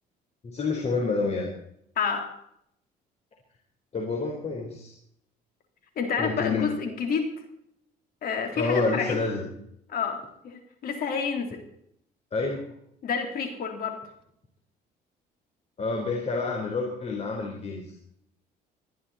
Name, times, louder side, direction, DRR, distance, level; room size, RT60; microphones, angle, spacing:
voice 1, 0.4-1.5 3.9-4.9 6.2-6.7 8.5-9.4 12.3-12.6 15.8-17.9, left 3 dB, 40° left, 1 dB, 4.3 m, -28 dB
voice 2, 2.0-2.3 6.0-7.3 8.2-9.2 9.9-11.6 13.0-14.0, left 6 dB, 60° left, 4 dB, 3.8 m, -29 dB
21.5 x 14.5 x 4.3 m, 0.73 s
cardioid pair, 110°, 17 cm